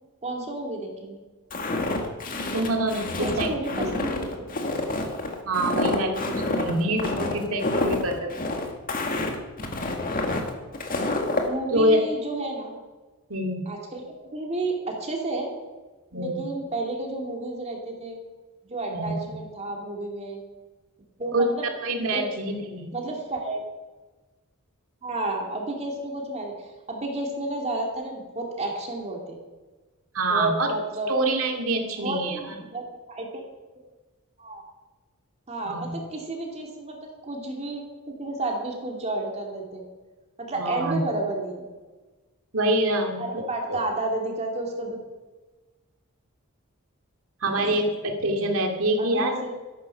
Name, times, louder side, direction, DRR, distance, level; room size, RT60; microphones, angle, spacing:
voice 1, 0.2-1.2 3.2-4.5 11.5-12.8 13.7-15.5 16.1-18.2 18.6-20.4 21.2-21.7 22.1-22.6 22.9-23.6 25.0-29.4 30.3-31.1 31.8-33.3 34.4-34.6 35.5-39.8 40.4-41.7 43.2-45.0 47.6-47.8 49.0-49.5, right 2 dB, 30° right, 0 dB, 2.6 m, -31 dB
Walk footsteps, 1.5-11.5, left 2 dB, 40° left, 1.9 m, -28 dB
voice 2, 2.5-3.9 5.5-8.4 11.7-12.1 13.3-13.6 16.1-16.5 18.9-19.3 21.3-21.5 21.8-22.9 30.1-30.7 31.1-32.6 35.7-36.0 40.5-41.0 42.5-43.4 43.7-43.8 47.4-49.5, right 1 dB, 75° right, 3 dB, 2.3 m, -26 dB
13.5 x 11.5 x 5.8 m, 1.3 s
head